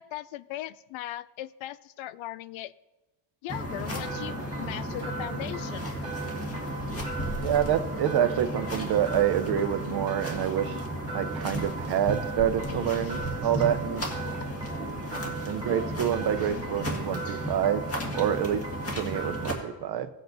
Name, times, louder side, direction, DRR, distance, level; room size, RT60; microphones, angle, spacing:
voice 1, 0.0-2.7 3.4-5.9 14.3-14.4, left 14 dB, 70° left, 16 dB, 0.5 m, -38 dB
sound 1, 3.5-19.5, equal, 30° left, 1.7 m, -34 dB
sound 2, 3.5-19.7, right 4 dB, 10° right, 1.8 m, -40 dB
voice 2, 7.4-10.8 11.1-14.0 15.5-17.8 18.1-18.6 19.0-20.1, right 10 dB, 55° right, 9 dB, 0.7 m, -27 dB
16.5 x 7.9 x 2.6 m, 1.1 s
cardioid pair, 145°, 48 cm